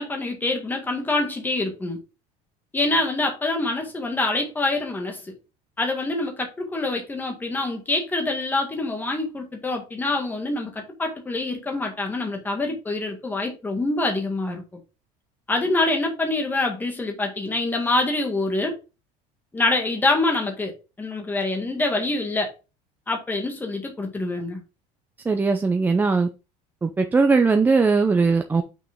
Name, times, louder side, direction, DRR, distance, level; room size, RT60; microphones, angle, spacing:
voice 1, 0.0-2.0 2.7-5.3 5.8-14.6 15.5-18.7 19.5-22.5 23.1-24.6, left 2 dB, 10° left, 1.8 m, -25 dB
voice 2, 25.2-26.3 26.8-28.6, right 4 dB, 10° right, 0.5 m, -19 dB
6.1 x 5.3 x 3.6 m
cardioid pair, 155°, 16 cm